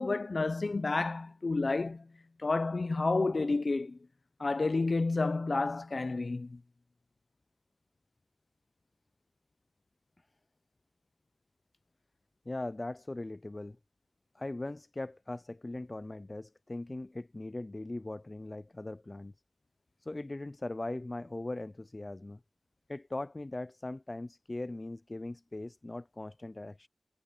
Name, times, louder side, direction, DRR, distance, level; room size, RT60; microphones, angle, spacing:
voice 1, 0.0-2.1 2.4-4.0 4.4-6.6, left 3 dB, 60° left, 0.7 m, -30 dB
voice 2, 12.5-13.8 14.3-19.3 20.0-22.4 22.9-26.9, left 2 dB, 35° left, 0.3 m, -40 dB
wide cardioid pair, 70°, 0 cm